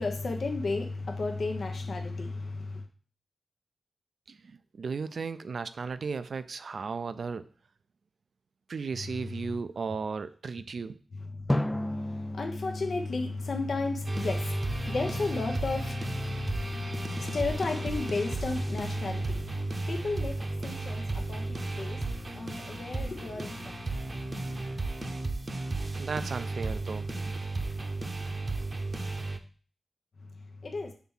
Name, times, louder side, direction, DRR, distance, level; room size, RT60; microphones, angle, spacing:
voice 1, 0.0-2.8 11.3-22.0 22.3-23.8 24.4-24.8 30.6-30.9, left 3 dB, 65° left, 0.9 m, -33 dB
voice 2, 4.3-7.5 8.7-11.0 26.0-27.3, right 5 dB, 70° right, 0.5 m, -35 dB
Drum, 11.5-14.4, left 1 dB, 10° left, 0.3 m, -33 dB
sound 1, 14.0-29.4, right 2 dB, 40° right, 0.8 m, -34 dB
5.9 x 3.5 x 5.5 m
wide cardioid pair, 75°, 0 cm